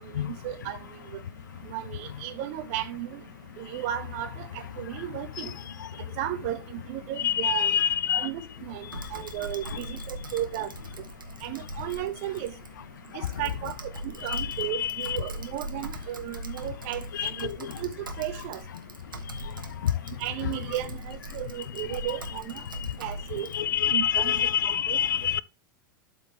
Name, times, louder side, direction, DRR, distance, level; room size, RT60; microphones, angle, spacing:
voice 1, 0.0-0.8 1.1-1.2 1.6-3.2 3.6-5.5 6.2-7.8 8.2-10.7 11.4-12.5 13.1-17.9 18.2-18.6 20.2-22.6 23.0-23.5 23.9-24.3 24.6-25.0, right 12 dB, 45° right, 1.1 m, -34 dB
voice 2, 7.2-8.3 14.3-15.2 17.1-17.5 23.5-25.4, left 9 dB, 65° left, 0.4 m, -26 dB
Typing, 8.9-23.6, right 1 dB, 75° right, 1.3 m, -41 dB
12.0 x 4.5 x 3.0 m
figure-of-eight pair, 90°, 11 cm